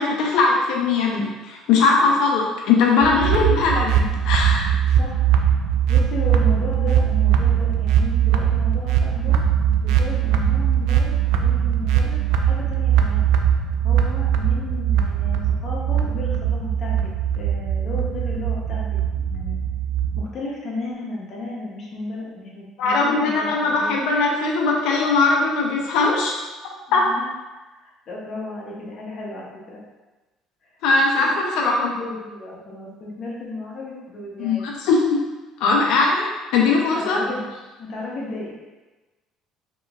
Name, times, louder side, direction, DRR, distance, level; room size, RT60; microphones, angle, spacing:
voice 1, 0.0-4.7 22.8-26.3 26.9-27.0 30.8-31.3 31.6-31.9 34.4-35.2 35.6-36.3 36.5-37.2, left 4 dB, 70° left, -1 dB, 0.6 m, -20 dB
sound 1, 3.0-20.2, right 9 dB, 85° right, 0.4 m, -20 dB
voice 2, 5.9-9.4 9.8-13.2 13.8-19.6 20.2-24.0 26.9-27.3 27.8-29.8 30.6-30.7 31.2-34.7 36.9-37.5 37.8-38.5, left 2 dB, 35° left, -3 dB, 0.9 m, -34 dB
5.1 x 3.0 x 2.5 m, 1.2 s
cardioid pair, 170°, 0 cm